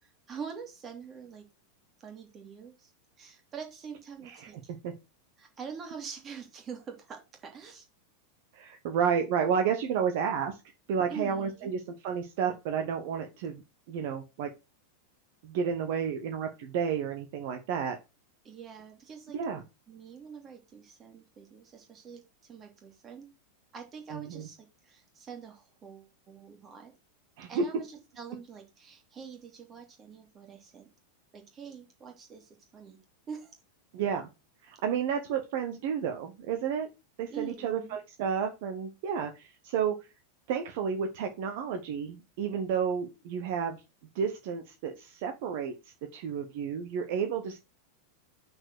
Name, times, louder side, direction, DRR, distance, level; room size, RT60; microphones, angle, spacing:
voice 1, 0.0-1.4 2.0-2.9 3.2-4.7 5.4-7.9 11.1-11.7 18.4-19.4 19.9-23.3 23.7-26.9 27.5-30.9 31.3-33.0 33.3-33.6 37.3-38.0, right 6 dB, 25° right, 4 dB, 2.2 m, -45 dB
voice 2, 8.5-10.6 10.9-13.6 13.9-14.5 15.4-18.0 19.3-19.6 24.1-24.4 27.4-27.6 33.9-34.3 34.6-36.9 37.2-40.1 40.5-43.8 44.1-45.7 46.1-47.6, right 7 dB, 50° right, 5 dB, 1.0 m, -31 dB
6.0 x 4.5 x 6.5 m, 0.27 s
figure-of-eight pair, 90°, 0 cm